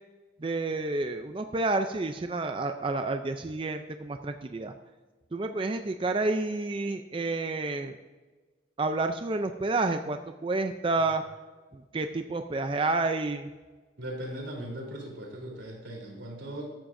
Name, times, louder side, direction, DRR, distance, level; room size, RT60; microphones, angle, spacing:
voice 1, 0.4-4.7 5.3-8.0 8.8-11.2 11.7-13.5, right 3 dB, 30° right, 7 dB, 0.4 m, -29 dB
voice 2, 14.0-16.7, right 1 dB, 90° right, 0 dB, 3.5 m, -38 dB
14.5 x 12.0 x 2.6 m, 1.3 s
head